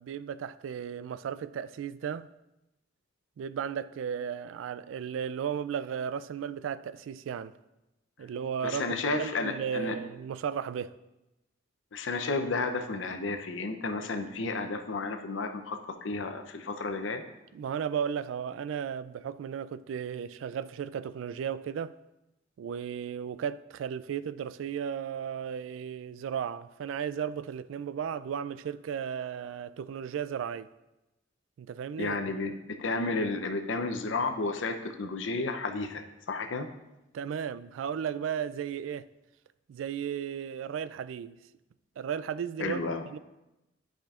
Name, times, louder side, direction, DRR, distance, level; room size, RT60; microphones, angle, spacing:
voice 1, 0.0-2.3 3.4-7.5 8.2-10.9 17.5-21.9 22.6-30.7 31.6-32.2 37.1-39.1 39.7-41.4 42.0-42.8 43.1-43.2, right 8 dB, 90° right, 0.3 m, -35 dB
voice 2, 8.6-9.9 11.9-17.2 32.0-32.5 32.8-36.7 42.6-43.1, left 3 dB, 80° left, 0.7 m, -32 dB
11.5 x 5.0 x 2.5 m
head